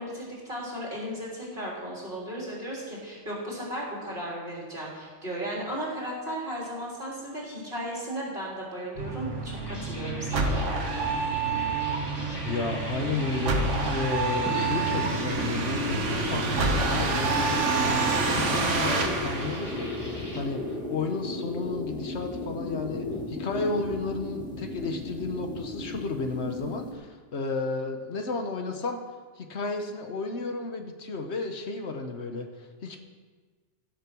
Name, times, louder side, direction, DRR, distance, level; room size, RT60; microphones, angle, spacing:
voice 1, 0.0-11.1, equal, 45° right, -5 dB, 3.9 m, -35 dB
sound 1, 9.0-20.4, right 3 dB, 85° right, 1.5 m, -28 dB
sound 2, 9.4-20.4, left 1 dB, 20° left, 1.5 m, -43 dB
voice 2, 12.4-29.0 29.4-33.0, left 3 dB, 65° left, 5 dB, 1.3 m, -33 dB
sound 3, 14.4-26.9, left 2 dB, 5° left, 1.8 m, -34 dB
16.0 x 6.7 x 6.1 m, 1.5 s
omnidirectional pair, 1.2 m